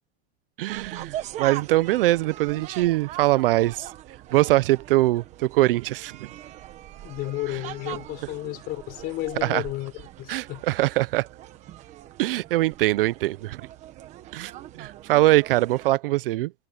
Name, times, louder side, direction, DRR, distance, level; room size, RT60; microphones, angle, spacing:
voice 1, 0.6-3.9 4.3-6.3 9.4-9.6 10.3-11.3 12.2-13.6 14.3-14.5 14.8-16.5, right 17 dB, 60° right, 0.5 m, -22 dB
sound 1, 0.7-15.9, right 13 dB, 20° right, 1.3 m, -41 dB
voice 2, 7.0-10.6, left 17 dB, 30° left, 5.1 m, -32 dB
supercardioid pair, 180°, 31 cm